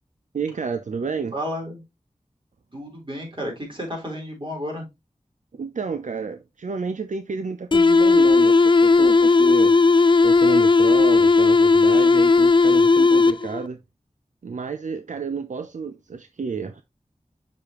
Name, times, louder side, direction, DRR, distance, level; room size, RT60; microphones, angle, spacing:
voice 1, 0.3-1.3 5.5-9.8 10.2-13.8 14.4-16.8, right 5 dB, 70° right, 0.6 m, -30 dB
voice 2, 1.3-1.8 2.7-4.9, equal, 40° right, 3.9 m, -32 dB
sound 1, 7.7-13.7, left 3 dB, 40° left, 0.4 m, -16 dB
6.8 x 5.1 x 3.0 m
wide cardioid pair, 45°, 13 cm